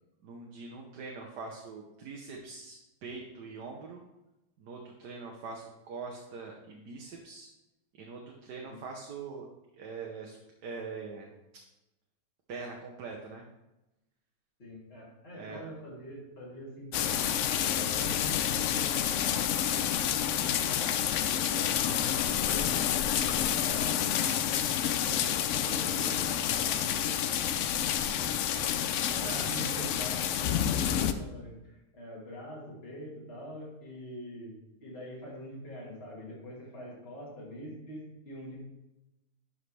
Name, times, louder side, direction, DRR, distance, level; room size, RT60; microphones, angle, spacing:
voice 1, 0.2-4.0 4.6-7.5 8.0-9.5 9.8-11.3 12.5-13.5 15.3-15.6 17.7-18.0 29.2-29.9, right 4 dB, 80° right, 0 dB, 1.6 m, -43 dB
voice 2, 14.6-17.2 17.8-19.5 19.8-19.9 20.2-20.9 21.4-22.7 23.5-24.2 25.0-27.1 27.9-38.7, equal, 35° left, -5 dB, 2.5 m, -44 dB
sound 1, 16.9-31.1, left 10 dB, 75° left, 0.7 m, -29 dB
11.5 x 5.6 x 3.3 m, 0.97 s
omnidirectional pair, 1.8 m